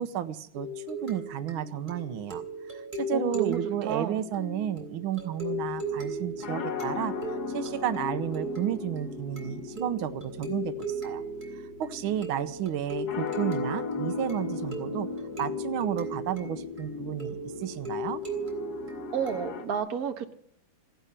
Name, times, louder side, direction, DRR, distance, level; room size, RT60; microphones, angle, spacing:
voice 1, 0.0-11.2 11.5-15.1 15.4-18.2, right 10 dB, 90° right, 12 dB, 1.7 m, -32 dB
sound 1, 0.5-19.7, right 1 dB, 25° right, 3.2 m, -37 dB
voice 2, 3.1-3.6 3.8-4.2 19.1-20.3, right 8 dB, 50° right, 6 dB, 1.7 m, -31 dB
sound 2, 5.5-19.6, left 5 dB, 55° left, 1.7 m, -38 dB
16.0 x 11.0 x 7.3 m, 0.66 s
omnidirectional pair, 2.2 m